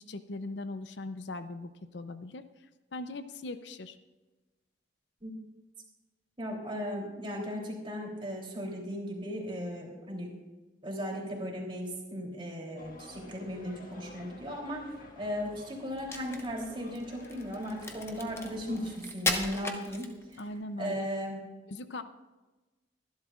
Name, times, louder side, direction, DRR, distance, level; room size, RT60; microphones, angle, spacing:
voice 1, 0.0-2.4 2.9-4.0 20.4-21.1 21.7-22.0, left 2 dB, 65° left, 10 dB, 0.6 m, -40 dB
voice 2, 6.4-10.3 10.8-20.4 20.8-21.4, equal, 30° right, -1 dB, 3.3 m, -37 dB
sound 1, 12.8-19.0, left 1 dB, 50° left, 1.6 m, -51 dB
Crack, 15.9-20.5, left 2 dB, 15° left, 1.0 m, -36 dB
23.5 x 11.5 x 2.5 m, 1.2 s
head